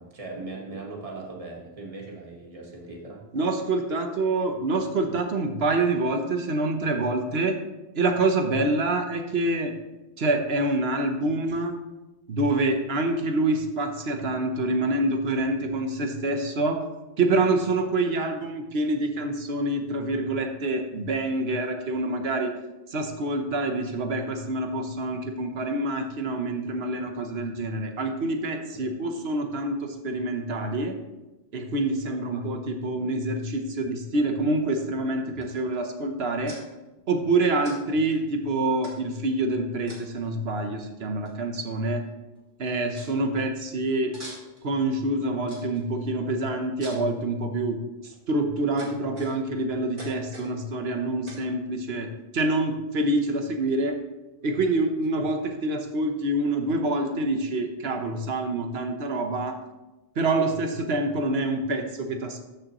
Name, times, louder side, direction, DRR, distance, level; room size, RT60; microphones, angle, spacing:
voice 1, 0.0-3.2 28.7-28.9 32.0-32.2 37.9-38.0 55.1-55.3, right 3 dB, 35° right, -2 dB, 1.7 m, -39 dB
voice 2, 3.3-7.6 8.0-9.7 10.2-11.8 12.3-16.8 17.2-22.5 22.9-31.0 31.5-36.6 37.1-42.0 42.6-44.1 44.6-47.8 48.3-52.1 52.3-53.9 54.4-59.6 60.2-62.4, right 2 dB, 75° right, 5 dB, 1.2 m, -26 dB
sound 1, 35.4-35.8 36.5-36.6 37.6-37.8 38.0-38.2 38.8-39.2 39.9-40.3 41.3-41.4 41.6-42.0 42.4-42.5 43.0-43.1 44.1-44.7 45.5-45.8 46.8-47.1 47.8-48.2 48.8-49.6 50.0-50.5 51.3-51.5, right 1 dB, 50° right, 2.1 m, -44 dB
13.0 x 6.4 x 3.0 m, 1.0 s
omnidirectional pair, 1.1 m